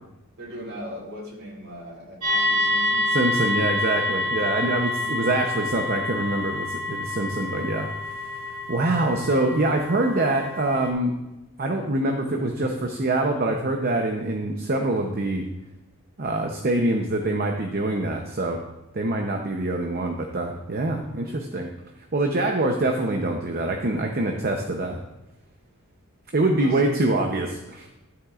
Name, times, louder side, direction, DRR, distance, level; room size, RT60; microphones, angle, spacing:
voice 1, 0.4-3.1 26.6-26.8, equal, 65° right, -5 dB, 3.6 m, -38 dB
sound 1, 2.2-10.9, left 2 dB, 90° right, 2.3 m, -27 dB
voice 2, 3.1-7.9 8.5-11.2 11.6-15.5 16.2-18.6 18.9-21.7 22.1-25.0 26.3-27.9, right 2 dB, 45° right, 2 dB, 0.8 m, -25 dB
13.0 x 8.1 x 2.5 m, 0.96 s
head